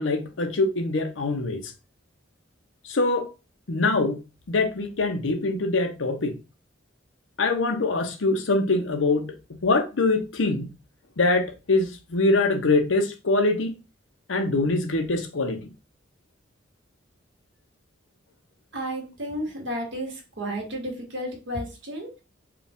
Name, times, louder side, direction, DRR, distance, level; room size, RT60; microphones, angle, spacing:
voice 1, 0.0-1.7 2.8-3.3 3.7-4.2 4.5-6.4 7.4-10.7 11.2-13.8 14.3-15.7, left 3 dB, 85° left, 0.8 m, -24 dB
voice 2, 18.7-22.2, equal, 65° right, 1.6 m, -32 dB
4.8 x 2.4 x 3.5 m
head